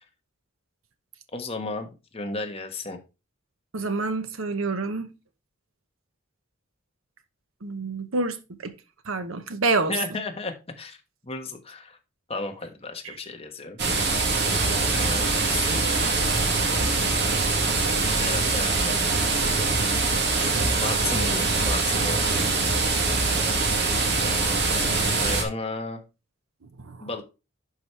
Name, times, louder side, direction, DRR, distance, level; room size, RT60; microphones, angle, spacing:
voice 1, 1.3-1.9 2.1-3.0 9.9-11.0 11.2-12.0 12.3-13.8 14.7-15.8 16.7-17.1 18.2-19.2 20.7-22.5 24.2-26.0 27.0-27.2, left 3 dB, 30° left, 1.3 m, -34 dB
voice 2, 3.7-5.1 7.6-8.7 9.0-9.9 13.0-13.2 25.2-25.3 26.8-27.1, right 3 dB, 80° right, 0.9 m, -28 dB
sound 1, 13.8-25.4, right 3 dB, 55° right, 2.0 m, -23 dB
11.0 x 4.8 x 3.3 m
head